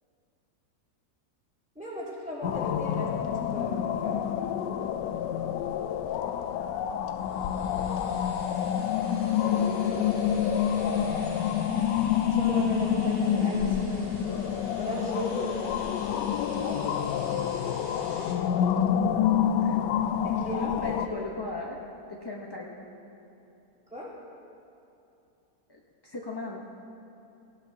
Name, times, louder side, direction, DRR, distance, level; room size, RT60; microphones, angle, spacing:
voice 1, 1.7-3.1 3.5-4.3 12.3-14.1 14.7-15.7 16.5-16.9 17.5-17.9 20.2-20.9 21.4-21.5 23.9-24.1, equal, 5° right, -9 dB, 3.2 m, -37 dB
sound 1, 2.4-21.1, left 8 dB, 80° left, 1.2 m, -27 dB
sound 2, 7.2-18.3, right 1 dB, 60° right, 3.5 m, -49 dB
voice 2, 7.8-8.9 19.5-21.8 22.1-22.7 25.7-26.6, left 3 dB, 30° left, -3 dB, 0.5 m, -40 dB
18.0 x 16.0 x 2.8 m, 2.8 s
omnidirectional pair, 1.9 m